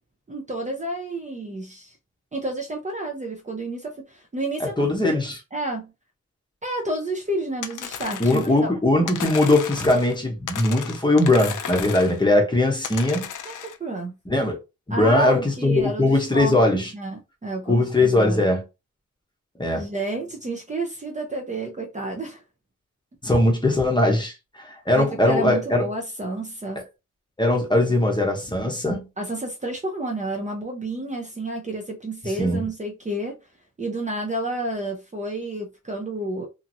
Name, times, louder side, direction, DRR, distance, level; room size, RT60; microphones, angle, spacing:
voice 1, 0.3-2.0 2.3-5.1 5.5-5.9 6.6-8.7 13.5-14.1 14.9-18.5 19.7-22.4 24.9-26.8 29.2-33.4 33.8-36.5, right 2 dB, 25° right, 0.6 m, -30 dB
voice 2, 4.6-5.4 8.2-13.3 14.3-14.6 14.9-16.9 17.7-18.6 19.6-19.9 23.2-25.9 26.8-26.9 27.4-29.1 32.4-32.6, left 2 dB, 15° left, 0.8 m, -20 dB
sound 1, 7.6-8.6 9.1-10.2 10.5-12.2 12.8-13.8, left 8 dB, 80° left, 0.5 m, -34 dB
2.9 x 2.5 x 2.6 m
wide cardioid pair, 125°, 30 cm